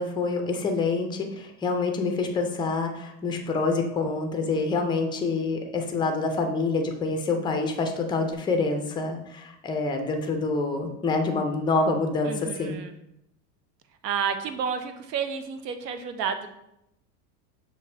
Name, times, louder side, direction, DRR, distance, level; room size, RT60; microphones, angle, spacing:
voice 1, 0.0-12.8, left 3 dB, 10° left, 4 dB, 0.3 m, -27 dB
voice 2, 12.3-12.9 14.0-16.5, right 7 dB, 85° right, 8 dB, 0.7 m, -30 dB
6.3 x 2.5 x 3.2 m, 0.82 s
supercardioid pair, 105°, 47 cm